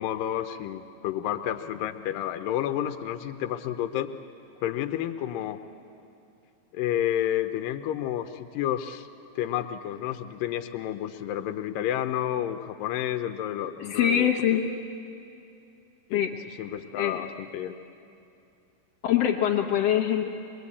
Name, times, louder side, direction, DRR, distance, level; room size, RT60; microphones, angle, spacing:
voice 1, 0.0-4.1 4.6-5.6 6.7-9.1 9.4-14.3 16.1-16.2 16.6-17.8, left 11 dB, 90° left, 8 dB, 2.4 m, -30 dB
voice 2, 13.8-14.6 16.1-16.3 17.0-17.3 19.0-20.3, left 10 dB, 60° left, 2 dB, 1.8 m, -24 dB
22.5 x 22.0 x 8.5 m, 2.7 s
omnidirectional pair, 3.8 m